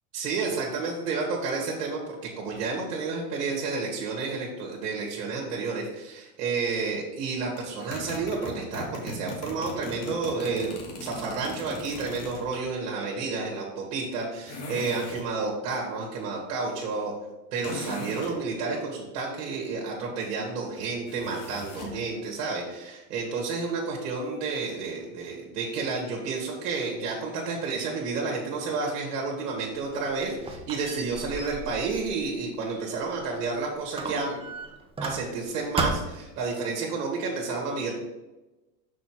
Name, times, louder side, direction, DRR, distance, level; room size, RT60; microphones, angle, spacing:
voice 1, 0.1-10.7 11.0-17.1 17.5-34.4 35.0-37.9, right 4 dB, 75° right, -1 dB, 2.0 m, -31 dB
sound 1, 7.6-12.6 14.5-15.3 17.6-18.4 21.1-22.0, left 1 dB, 55° left, 2.4 m, -39 dB
Squeak, 29.7-33.5 33.9-35.5 35.8-36.3, right 3 dB, 10° right, 0.9 m, -35 dB
6.0 x 5.7 x 4.7 m, 1.1 s
supercardioid pair, 120°, 47 cm